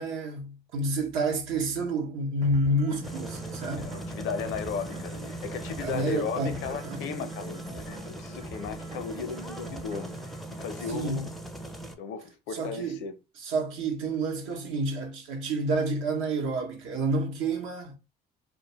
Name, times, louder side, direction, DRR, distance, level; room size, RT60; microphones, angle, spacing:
voice 1, 0.0-3.9 5.8-7.0 10.9-11.3 12.5-13.0 13.4-18.0, right 2 dB, 70° right, 0.8 m, -29 dB
sound 1, 2.4-10.4, right 1 dB, 30° right, 0.7 m, -46 dB
sound 2, 3.0-11.9, right 1 dB, ahead, 0.4 m, -39 dB
voice 2, 3.8-11.3 12.0-13.1, left 6 dB, 65° left, 0.5 m, -36 dB
2.3 x 2.1 x 2.9 m
supercardioid pair, 75°, 21 cm